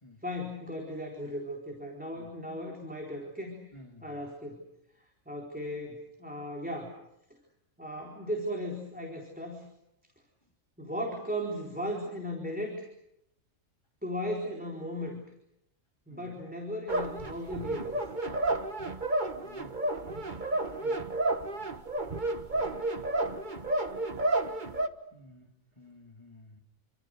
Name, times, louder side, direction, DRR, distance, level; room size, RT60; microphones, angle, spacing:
voice 1, 0.2-3.6 4.0-4.6 5.3-6.9 7.8-9.6 10.8-12.9 14.0-15.2 16.1-18.0 20.8-21.1, equal, 5° right, -1 dB, 4.3 m, -36 dB
voice 2, 3.7-4.2 16.1-16.4 19.4-19.8 25.1-25.5 25.8-26.6, left 1 dB, 20° left, 1 dB, 3.4 m, -52 dB
sound 1, 16.9-24.9, right 2 dB, 35° right, 1.5 m, -31 dB
28.5 x 26.5 x 6.5 m, 0.81 s
omnidirectional pair, 1.4 m